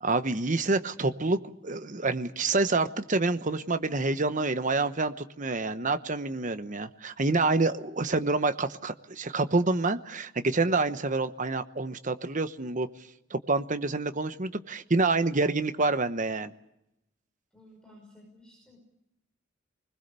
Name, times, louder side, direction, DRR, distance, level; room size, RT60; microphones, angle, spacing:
voice 1, 0.0-12.9 13.3-16.5, right 3 dB, 40° right, 10 dB, 1.0 m, -27 dB
voice 2, 17.5-18.8, left 1 dB, 5° left, -1 dB, 5.7 m, -54 dB
26.0 x 20.5 x 6.9 m, 0.86 s
head